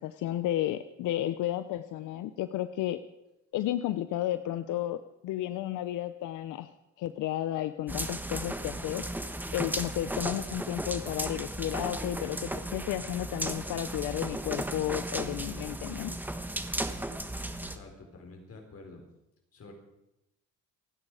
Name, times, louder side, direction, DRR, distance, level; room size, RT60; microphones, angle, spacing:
voice 1, 0.0-3.0 3.5-6.7 7.0-9.0 9.5-16.2, left 13 dB, 85° left, 12 dB, 0.7 m, -32 dB
sound 1, 7.9-17.8, right 1 dB, 5° right, 1.4 m, -35 dB
voice 2, 17.6-19.0 19.5-19.7, left 3 dB, 50° left, 2 dB, 4.8 m, -49 dB
28.5 x 10.0 x 4.9 m, 0.91 s
cardioid pair, 90°, 30 cm